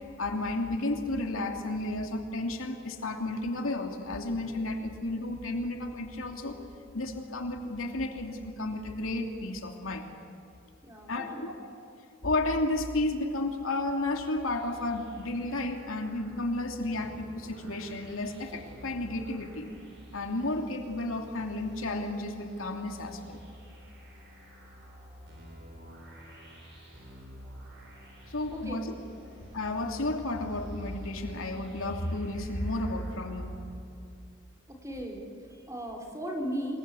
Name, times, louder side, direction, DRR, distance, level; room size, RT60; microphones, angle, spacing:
voice 1, 0.2-6.6 6.9-10.1 11.1-11.5 12.2-19.7 20.1-23.4 28.3-28.9 29.5-33.6, left 2 dB, 85° left, 3 dB, 2.8 m, -32 dB
voice 2, 10.8-11.5 28.5-28.8 34.7-36.8, equal, 15° right, 1 dB, 4.1 m, -37 dB
sound 1, 14.4-33.8, equal, 60° right, 7.8 m, -50 dB
26.0 x 21.0 x 8.5 m, 2.7 s
head